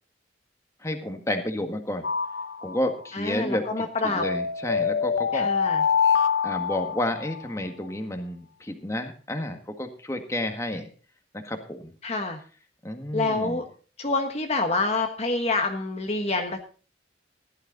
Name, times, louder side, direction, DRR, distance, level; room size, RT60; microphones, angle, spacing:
voice 1, 0.8-2.0 2.6-5.5 6.4-10.9 11.3-11.9 12.8-13.6, left 1 dB, 15° left, 5 dB, 1.8 m, -31 dB
sound 1, 2.0-3.1 4.2-7.4, left 6 dB, 85° left, 0.8 m, -25 dB
voice 2, 3.1-4.2 5.3-5.8 12.0-12.4 13.1-13.6 14.0-16.6, left 3 dB, 35° left, 4 dB, 1.4 m, -27 dB
15.5 x 11.5 x 4.1 m, 0.37 s
head